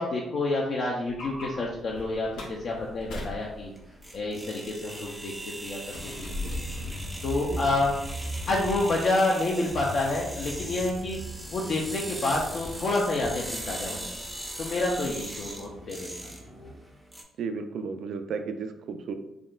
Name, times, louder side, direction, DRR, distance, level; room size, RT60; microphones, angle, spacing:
voice 1, 0.0-3.7 4.1-5.3 5.6-6.3 7.2-8.0 8.5-11.2 11.5-14.1 14.6-16.1, left 2 dB, 55° left, -2 dB, 0.5 m, -28 dB
sound 1, 1.1-16.7, equal, 80° left, 0.8 m, -40 dB
sound 2, 2.5-17.2, right 1 dB, 10° right, 0.5 m, -40 dB
voice 2, 17.4-19.1, right 5 dB, 70° right, 8 dB, 0.3 m, -33 dB
3.6 x 2.2 x 2.4 m, 0.84 s
cardioid pair, 90°, 0 cm